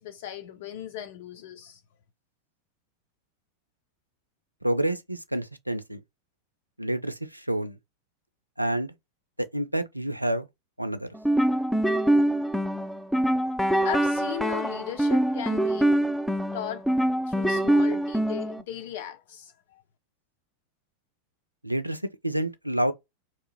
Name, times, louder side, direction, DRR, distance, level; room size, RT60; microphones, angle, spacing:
voice 1, 0.0-1.8 13.8-16.0 16.5-16.8 17.3-19.5, left 11 dB, 50° left, 0.7 m, -37 dB
voice 2, 4.6-6.0 6.8-7.8 8.6-8.9 9.5-10.5 10.8-11.1 21.6-22.9, right 1 dB, 90° right, 0.3 m, -28 dB
sound 1, 11.1-18.6, right 1 dB, ahead, 0.3 m, -24 dB
2.9 x 2.4 x 2.8 m
figure-of-eight pair, 90°, 0 cm